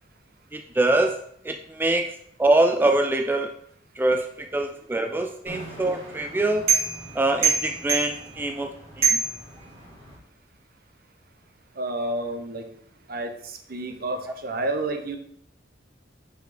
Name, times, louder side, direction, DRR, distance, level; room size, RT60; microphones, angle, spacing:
voice 1, 0.5-3.5 4.0-6.7 7.1-9.2, right 2 dB, 10° right, 5 dB, 0.3 m, -24 dB
sound 1, 5.5-10.2, right 5 dB, 35° right, 2.4 m, -27 dB
voice 2, 11.8-12.7 13.1-15.2, right 2 dB, 55° right, 6 dB, 1.0 m, -30 dB
5.9 x 5.7 x 4.3 m, 0.68 s
head